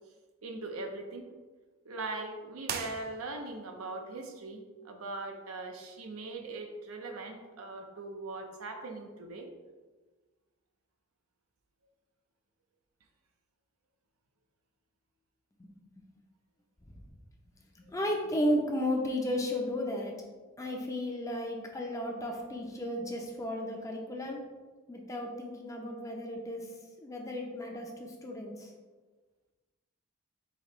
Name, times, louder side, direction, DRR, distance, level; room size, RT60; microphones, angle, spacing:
voice 1, 0.4-1.3 1.8-9.5, right 2 dB, 85° right, 3 dB, 0.6 m, -40 dB
sound 1, 2.6-3.7, right 7 dB, 45° right, 0.3 m, -39 dB
voice 2, 17.7-20.1 20.6-24.4 24.9-26.7 27.0-28.7, left 1 dB, 15° left, 0 dB, 0.5 m, -34 dB
5.0 x 2.8 x 3.0 m, 1.3 s
head